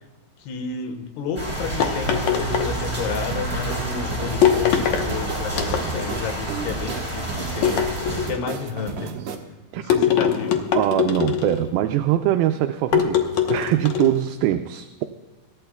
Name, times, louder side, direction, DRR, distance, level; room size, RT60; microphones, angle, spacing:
voice 1, 0.4-9.2 9.8-10.6, left 5 dB, 90° left, 5 dB, 3.4 m, -31 dB
sound 1, 1.4-8.3, right 1 dB, 5° left, 5.1 m, -29 dB
sound 2, 1.8-3.2 4.4-5.1 5.5-6.2 7.6-8.5 9.9-11.7 12.9-14.2, left 9 dB, 65° left, 1.8 m, -22 dB
sound 3, 3.3-9.4, right 6 dB, 60° right, 2.4 m, -34 dB
voice 2, 10.8-15.0, right 12 dB, 80° right, 7 dB, 2.4 m, -22 dB
26.0 x 13.5 x 2.3 m, 1.3 s
omnidirectional pair, 4.5 m